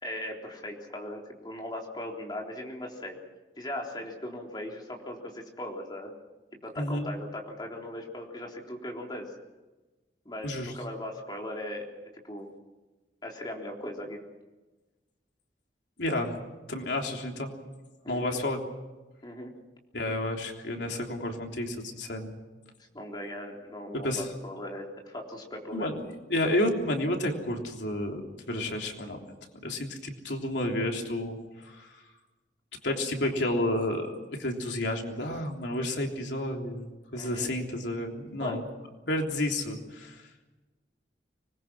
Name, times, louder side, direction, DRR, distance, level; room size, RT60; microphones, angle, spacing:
voice 1, 0.0-3.2 3.6-6.1 6.5-9.3 10.3-11.9 12.2-12.5 13.2-14.2 18.0-18.4 19.2-19.5 22.9-25.9 37.1-37.5 38.4-38.6, left 1 dB, 25° left, 0 dB, 3.7 m, -38 dB
voice 2, 6.8-7.1 10.4-10.7 16.0-16.4 16.7-17.5 18.1-18.6 19.9-22.3 23.9-24.3 25.7-28.2 28.5-29.2 29.6-32.0 32.8-38.6 39.1-40.2, left 1 dB, 90° left, 2 dB, 3.4 m, -31 dB
25.5 x 20.5 x 6.2 m, 1.2 s
head